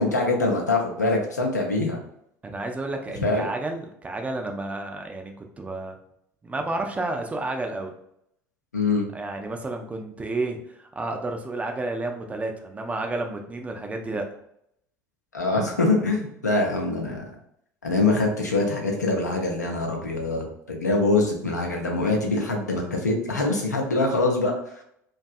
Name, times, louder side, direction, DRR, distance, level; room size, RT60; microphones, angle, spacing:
voice 1, 0.0-2.0 3.2-3.5 8.7-9.1 15.3-17.3 17.8-24.5, left 2 dB, 85° left, 1 dB, 0.5 m, -24 dB
voice 2, 2.4-6.0 6.4-7.9 9.1-14.3, right 2 dB, 15° right, 3 dB, 0.4 m, -31 dB
2.5 x 2.3 x 2.4 m, 0.74 s
figure-of-eight pair, 65°, 9 cm